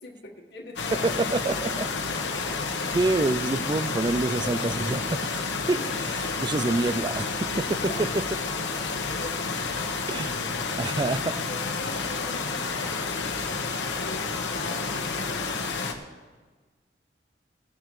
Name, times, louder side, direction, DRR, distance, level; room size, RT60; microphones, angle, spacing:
voice 1, 0.0-2.6 5.7-6.7 7.7-8.2 8.5-9.4 11.5-15.6, left 1 dB, 65° left, 1 dB, 1.5 m, -43 dB
sound 1, 0.8-15.9, left 4 dB, 85° left, 1.1 m, -30 dB
voice 2, 0.9-1.9 2.9-5.3 5.7-5.8 6.4-8.2 10.1-10.4 10.8-11.4, right 2 dB, 25° right, 14 dB, 0.4 m, -27 dB
18.5 x 11.0 x 3.1 m, 1.3 s
head